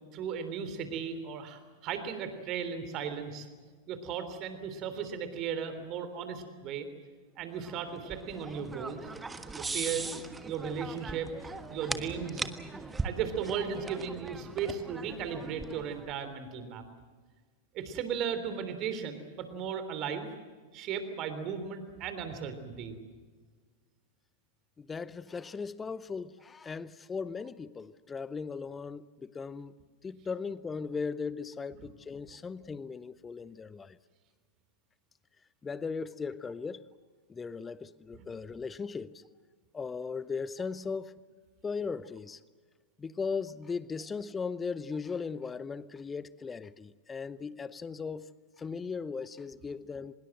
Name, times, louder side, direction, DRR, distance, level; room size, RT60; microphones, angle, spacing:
voice 1, 0.1-3.5 3.9-6.9 7.4-9.1 9.5-10.1 10.4-11.3 11.7-12.5 13.0-16.8 17.7-20.3 20.7-23.0 38.1-38.2, right 7 dB, 35° right, 3.4 m, -36 dB
sound 1, 7.6-16.2, right 3 dB, 10° right, 1.4 m, -40 dB
voice 2, 24.8-34.0 35.6-36.9 37.3-39.2 39.7-41.1 41.6-42.4 43.0-48.3 48.6-50.1, left 5 dB, 15° left, 0.8 m, -38 dB
24.5 x 21.5 x 7.7 m
figure-of-eight pair, 90°, 0 cm